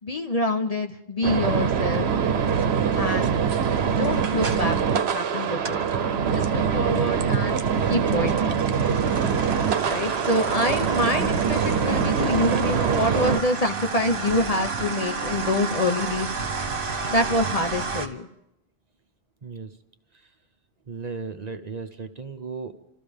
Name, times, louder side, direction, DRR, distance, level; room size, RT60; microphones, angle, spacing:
voice 1, 0.0-2.1 3.0-3.3 3.8-5.9 6.3-7.6 7.9-8.7 9.8-16.3 17.1-18.3, left 1 dB, 40° left, 6 dB, 0.8 m, -26 dB
sound 1, 1.2-13.4, right 7 dB, 80° right, 1.0 m, -23 dB
sound 2, 2.5-5.9 6.3-18.1, right 4 dB, 60° right, 1.3 m, -33 dB
voice 2, 19.4-19.8 20.1-20.3 20.9-22.9, right 4 dB, 45° right, 7 dB, 0.9 m, -36 dB
28.0 x 13.5 x 3.5 m, 0.85 s
omnidirectional pair, 1.1 m